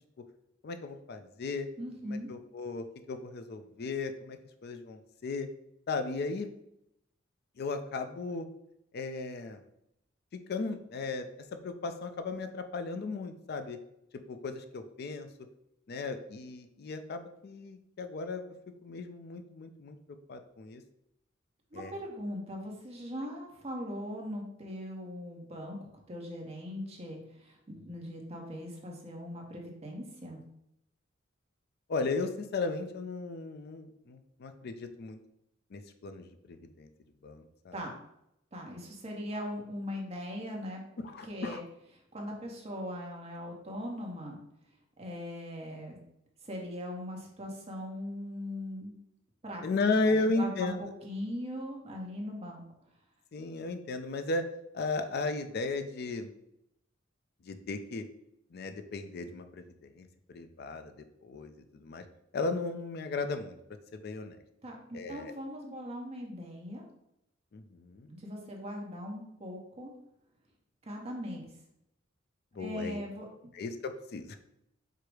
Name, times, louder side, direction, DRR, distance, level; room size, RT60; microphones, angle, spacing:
voice 1, 0.6-1.7 2.0-5.5 5.9-6.5 7.6-8.5 8.9-9.6 10.3-13.8 14.3-15.3 15.9-18.5 18.8-20.0 20.3-20.8 21.7-21.9 31.9-35.2 35.7-36.9 37.2-37.8 41.0-41.6 49.6-50.8 53.3-54.5 54.7-56.3 57.4-58.0 58.5-62.0 62.3-63.6 63.9-64.4 64.9-65.3 67.5-68.1 72.5-73.0 73.5-74.4, left 3 dB, 50° left, 8 dB, 0.4 m, -35 dB
voice 2, 1.8-2.3 21.7-25.8 26.1-30.4 37.7-37.9 38.5-40.8 41.2-41.6 42.1-44.4 45.0-46.0 46.4-48.9 49.4-49.6 50.1-50.7 51.0-52.6 64.6-66.8 68.1-69.9 70.8-71.5 72.6-73.5, equal, 30° right, 0 dB, 0.8 m, -40 dB
4.6 x 2.0 x 4.7 m, 0.80 s
head